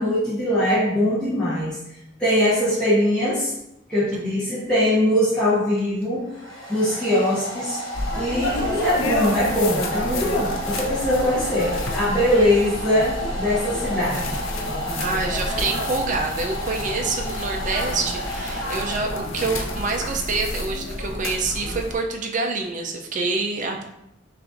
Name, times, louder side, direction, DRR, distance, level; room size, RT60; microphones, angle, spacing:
voice 1, 0.0-1.8 2.2-3.5 3.9-6.3 6.7-7.8 8.2-14.3, left 1 dB, 5° left, -12 dB, 0.9 m, -21 dB
Domestic sounds home sounds, 5.8-19.5, equal, 65° left, 1.1 m, -33 dB
sound 1, 7.9-22.0, left 1 dB, 80° left, 0.5 m, -30 dB
voice 2, 15.0-23.8, right 3 dB, 40° right, 3 dB, 0.5 m, -26 dB
5.7 x 2.5 x 2.5 m, 0.82 s
head